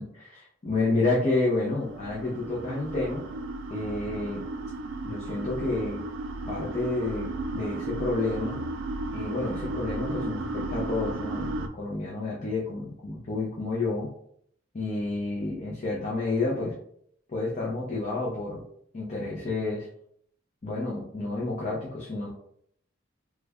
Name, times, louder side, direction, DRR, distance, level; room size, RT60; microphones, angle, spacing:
voice 1, 0.0-3.2 3.7-4.4 5.0-6.0 6.5-8.6 9.1-14.1 14.7-16.8 17.3-18.6 18.9-19.9 20.6-22.3, left 2 dB, 40° left, -4 dB, 0.6 m, -30 dB
sound 1, 1.3-11.7, right 2 dB, 85° right, 0.4 m, -34 dB
3.1 x 2.2 x 3.4 m, 0.68 s
head